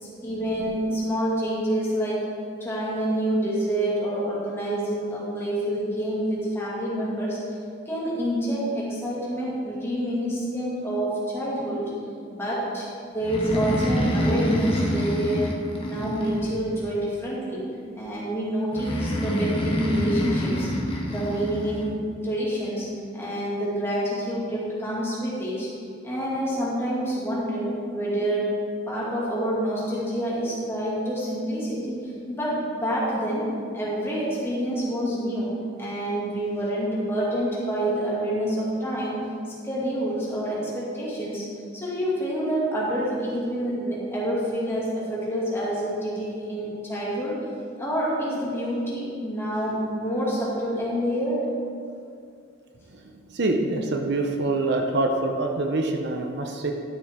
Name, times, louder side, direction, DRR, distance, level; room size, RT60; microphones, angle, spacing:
voice 1, 0.0-2.3 2.6-7.4 7.9-11.8 12.3-17.6 17.9-20.7 21.1-22.9 23.1-25.7 26.0-28.5 28.9-33.5 33.7-35.5 35.8-39.2 39.6-41.4 41.7-47.4 47.8-51.4, equal, 15° left, -7 dB, 2.4 m, -27 dB
Breathing, 13.2-16.9 18.7-21.8, equal, 30° left, 1.2 m, -26 dB
voice 2, 53.3-56.7, right 2 dB, 60° right, 3 dB, 0.7 m, -25 dB
12.0 x 6.8 x 3.7 m, 2.4 s
head